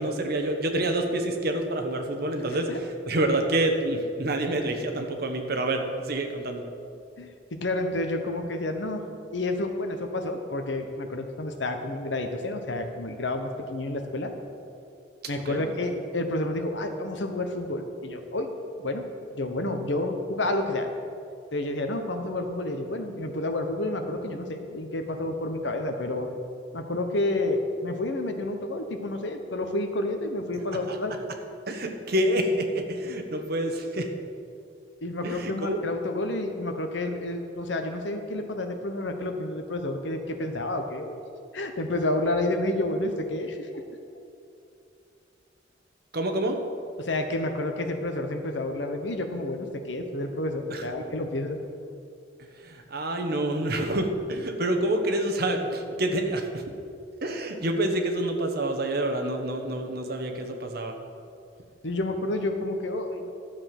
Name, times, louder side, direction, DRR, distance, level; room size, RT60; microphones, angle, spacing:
voice 1, 0.0-6.7 15.5-15.6 30.9-31.0 31.7-34.1 35.2-35.8 46.1-46.6 50.7-51.1 52.6-56.7 57.2-60.9, right 1 dB, 55° right, 5 dB, 1.2 m, -27 dB
voice 2, 2.5-2.8 7.2-9.0 9.3-14.3 15.3-18.5 18.8-19.1 19.3-20.9 21.5-26.3 26.7-31.1 35.0-41.2 41.5-43.8 47.0-51.6 61.8-63.3, left 2 dB, 75° left, 5 dB, 1.2 m, -30 dB
12.0 x 7.7 x 6.0 m, 2.5 s
head